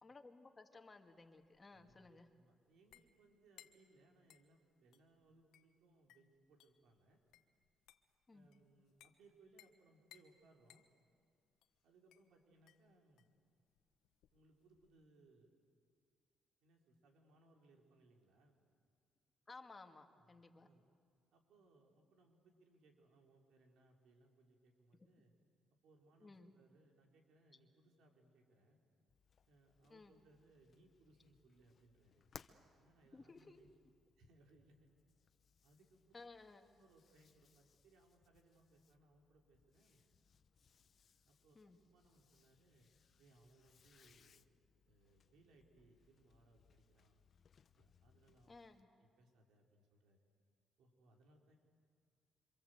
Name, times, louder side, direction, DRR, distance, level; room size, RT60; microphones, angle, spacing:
voice 1, 0.0-2.3 8.3-8.5 19.5-20.7 24.9-25.1 26.2-26.5 29.9-30.1 33.1-33.6 36.1-36.7 41.6-41.8 48.5-48.9, left 3 dB, 25° left, 5 dB, 2.1 m, -58 dB
sound 1, 1.2-15.0, left 12 dB, 85° left, 1.2 m, -69 dB
voice 2, 1.7-7.2 8.3-10.9 11.8-13.3 14.3-15.5 16.6-18.6 20.2-20.8 21.3-25.3 25.8-28.8 29.5-32.3 32.8-33.7 34.2-34.9 35.6-36.0 36.7-40.0 41.3-41.6 41.9-42.9 43.2-44.5 44.9-47.2 47.7-48.5 49.0-50.2 50.8-51.6, right 2 dB, 80° right, 2 dB, 4.3 m, -70 dB
sound 2, 29.1-48.8, left 6 dB, 50° left, 1.0 m, -67 dB
27.0 x 25.5 x 8.0 m, 2.1 s
cardioid pair, 90°, 0 cm